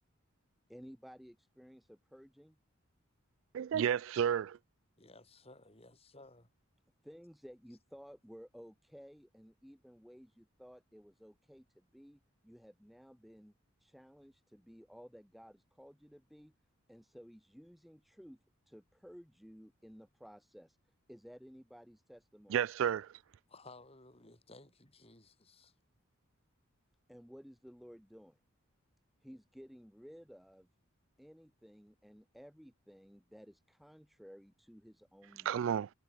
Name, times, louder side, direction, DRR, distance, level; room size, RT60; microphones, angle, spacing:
voice 1, 0.7-2.6 7.0-13.5 13.8-16.5 16.9-18.4 18.7-22.6 27.1-28.4 29.2-30.7 31.2-35.8, equal, ahead, 0.6 m, -55 dB
voice 2, 3.5-4.6 22.5-23.2 35.4-35.9, right 8 dB, 65° right, 0.3 m, -31 dB
voice 3, 5.0-6.5 23.5-25.7, left 2 dB, 30° left, 4.9 m, -57 dB
head